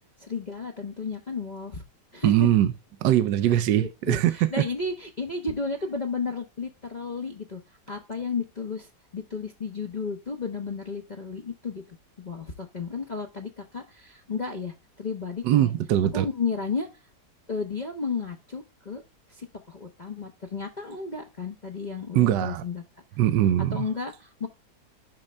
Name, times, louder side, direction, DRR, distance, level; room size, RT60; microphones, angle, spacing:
voice 1, 0.2-1.8 2.1-2.5 3.4-7.6 7.9-15.7 16.1-16.9 17.5-19.0 19.3-22.8 23.7-24.5, left 4 dB, 35° left, 0.8 m, -33 dB
voice 2, 2.2-2.7 3.0-4.5 15.4-16.3 22.1-22.6 23.2-23.8, right 12 dB, 75° right, 1.2 m, -21 dB
10.5 x 3.8 x 3.2 m
omnidirectional pair, 1.9 m